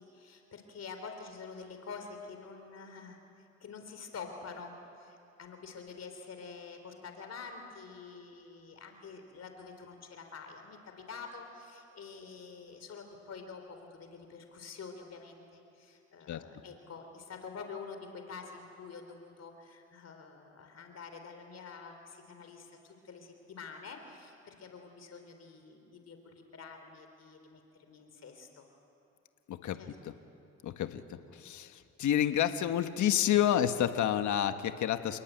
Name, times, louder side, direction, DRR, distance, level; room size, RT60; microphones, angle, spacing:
voice 1, 0.0-3.2 3.6-28.7 29.7-29.9, left 5 dB, 55° left, 5 dB, 3.6 m, -47 dB
voice 2, 29.5-29.8 30.6-31.0 31.4-31.7 32.0-35.2, left 10 dB, 75° left, 9 dB, 1.4 m, -29 dB
29.5 x 20.5 x 9.2 m, 2.9 s
cardioid pair, 90°, 30 cm